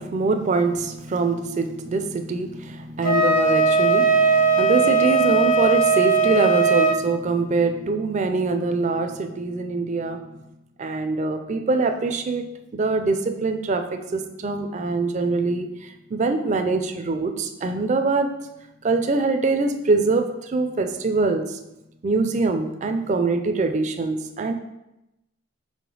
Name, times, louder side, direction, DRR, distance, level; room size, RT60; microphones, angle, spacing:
voice 1, 0.0-10.3 10.8-12.5 12.7-18.3 18.8-21.6 22.0-24.5, right 3 dB, 35° right, 6 dB, 0.3 m, -24 dB
Wind instrument woodwind instrument, 3.0-7.0, right 4 dB, 40° left, 0.5 m, -18 dB
5.2 x 4.9 x 3.8 m, 0.93 s
head